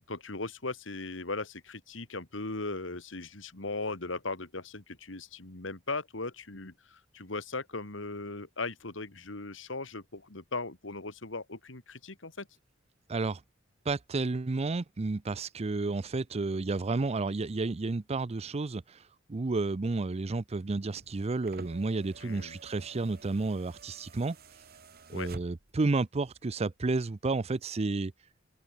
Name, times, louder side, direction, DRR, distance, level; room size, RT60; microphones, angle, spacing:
voice 1, 0.1-12.5 22.2-22.6 25.1-25.3, left 3 dB, 70° left, 2.4 m, -38 dB
voice 2, 13.1-13.4 13.9-19.0 19.3-24.4 25.1-28.1, right 3 dB, 35° right, 0.5 m, -31 dB
sound 1, 20.8-25.9 27.1-27.2, right 3 dB, 50° right, 1.9 m, -51 dB
open air
head